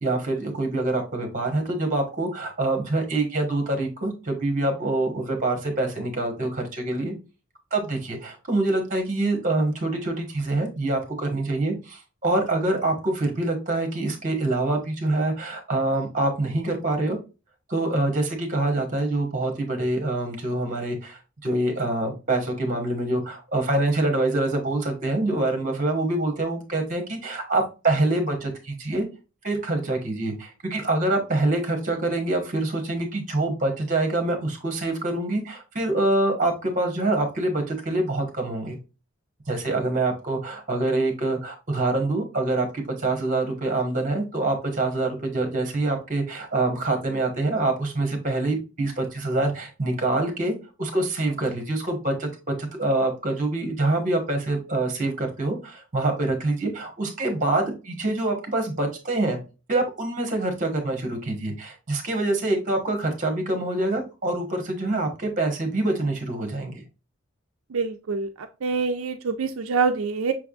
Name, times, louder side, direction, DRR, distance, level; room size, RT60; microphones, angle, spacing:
voice 1, 0.0-7.1 7.7-17.2 17.7-29.1 29.4-38.8 39.5-59.4 59.7-66.8, right 2 dB, 40° right, 5 dB, 1.2 m, -25 dB
voice 2, 67.7-70.3, right 5 dB, 80° right, 6 dB, 0.4 m, -26 dB
6.1 x 3.5 x 2.3 m, 0.31 s
head